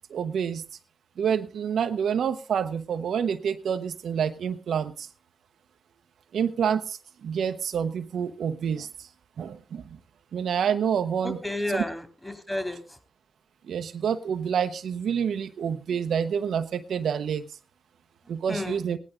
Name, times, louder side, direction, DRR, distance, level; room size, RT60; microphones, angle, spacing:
voice 1, 0.1-0.6 1.2-5.1 6.3-9.1 9.4-9.9 10.3-11.4 11.7-11.8 13.7-17.4 18.3-19.0, right 7 dB, 80° right, 8 dB, 0.9 m, -28 dB
voice 2, 11.2-13.0 18.5-18.8, left 1 dB, 10° left, 8 dB, 3.1 m, -32 dB
17.0 x 11.0 x 3.8 m, 0.32 s
cardioid pair, 50°, 0 cm